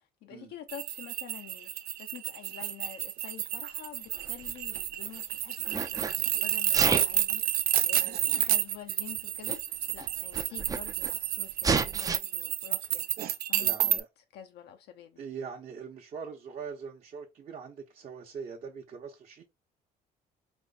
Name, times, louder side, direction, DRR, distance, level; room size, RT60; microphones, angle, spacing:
voice 1, 0.2-13.1 13.5-14.0 14.3-15.2, left 10 dB, 75° left, 0.6 m, -48 dB
sound 1, 0.7-14.0, right 12 dB, 65° right, 0.5 m, -30 dB
Sneeze, 4.1-5.2 5.6-6.1 6.6-7.2 8.2-8.3 9.2-9.3 9.5-9.6 9.9-11.1 11.6-12.2, right 5 dB, 20° right, 0.4 m, -30 dB
voice 2, 13.6-14.1 15.2-19.4, right 6 dB, 45° right, 0.9 m, -42 dB
4.4 x 2.1 x 3.9 m
cardioid pair, 110°, 17 cm